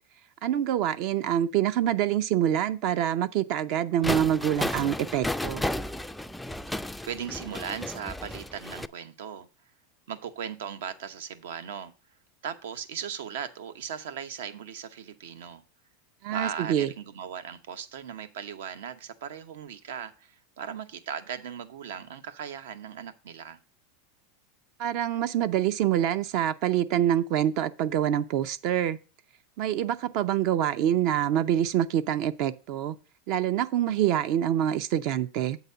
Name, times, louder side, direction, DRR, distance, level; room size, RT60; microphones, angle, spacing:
voice 1, 0.4-5.7 16.2-16.9 24.8-29.0 29.6-33.0 33.3-35.6, right 10 dB, 55° right, 0.5 m, -26 dB
sound 1, 4.0-8.9, left 1 dB, 5° left, 0.3 m, -33 dB
voice 2, 7.0-9.5 10.1-11.9 12.4-15.6 16.3-23.6, right 8 dB, 80° right, 0.9 m, -38 dB
8.3 x 4.1 x 6.7 m
supercardioid pair, 125°, 0 cm